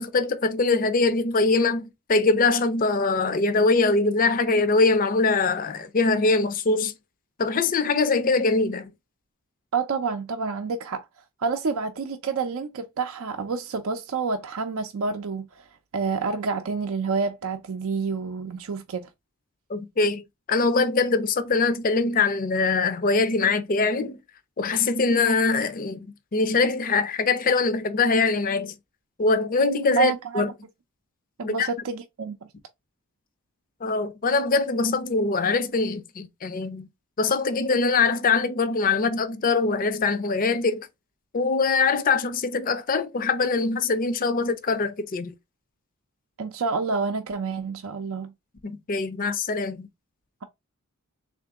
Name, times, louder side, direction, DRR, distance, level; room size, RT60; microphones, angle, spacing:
voice 1, 0.0-6.9 7.4-8.9 19.7-20.2 20.5-24.2 24.6-26.1 26.3-28.7 29.2-30.5 31.4-31.7 33.8-36.9 37.2-40.9 41.3-45.3 48.6-49.9, left 3 dB, 40° left, 0.5 m, -23 dB
voice 2, 9.7-11.0 11.4-15.6 15.9-19.1 30.0-30.5 31.4-32.5 46.4-48.3, right 5 dB, 65° right, 0.5 m, -28 dB
3.6 x 2.5 x 3.5 m
head